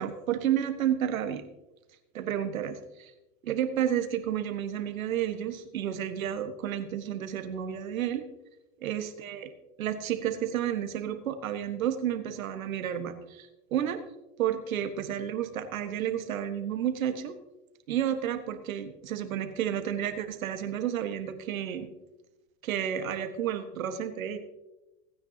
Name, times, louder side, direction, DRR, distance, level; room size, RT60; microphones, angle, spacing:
voice 1, 0.0-1.4 2.1-3.1 3.4-8.2 8.8-9.5 9.8-14.0 14.4-17.3 17.9-21.9 22.6-24.4, right 10 dB, 90° right, 8 dB, 1.6 m, -31 dB
24.5 x 9.7 x 2.9 m, 1.0 s
hypercardioid pair, 110°, 40 cm